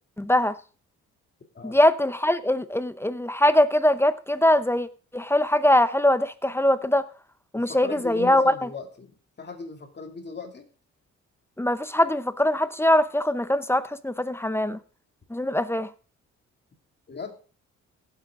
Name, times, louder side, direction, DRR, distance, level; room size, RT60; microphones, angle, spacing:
voice 1, 0.2-0.6 1.6-4.9 5.1-7.0 7.5-8.7 11.6-14.8 15.3-15.9, left 1 dB, 10° left, 13 dB, 0.7 m, -22 dB
voice 2, 7.5-10.7 17.1-17.4, left 4 dB, 35° left, 4 dB, 2.7 m, -38 dB
16.5 x 7.9 x 3.7 m, 0.37 s
cardioid pair, 90°, 30 cm